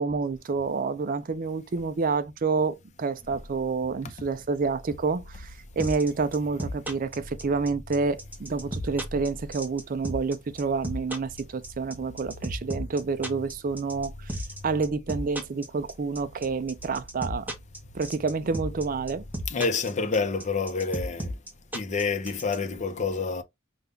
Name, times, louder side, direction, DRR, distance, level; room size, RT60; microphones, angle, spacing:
voice 1, 0.0-14.4 14.6-17.5 17.9-19.2, right 4 dB, 45° right, 0.4 m, -28 dB
sound 1, 3.2-19.4, left 1 dB, 85° left, 1.1 m, -46 dB
sound 2, 5.8-22.6, equal, 10° right, 0.8 m, -33 dB
voice 2, 19.5-21.3 21.7-23.4, left 4 dB, 35° left, 0.6 m, -28 dB
5.3 x 2.3 x 3.5 m
head